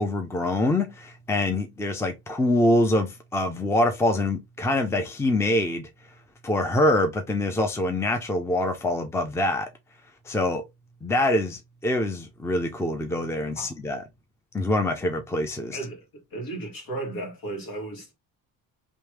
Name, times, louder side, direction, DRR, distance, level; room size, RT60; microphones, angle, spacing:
voice 1, 0.0-5.9 6.4-9.7 10.3-10.6 11.0-14.0 14.5-15.8, left 1 dB, 5° left, 0.6 m, -25 dB
voice 2, 16.3-18.1, right 2 dB, 60° left, 2.0 m, -34 dB
3.2 x 3.1 x 3.2 m
supercardioid pair, 85°, 38 cm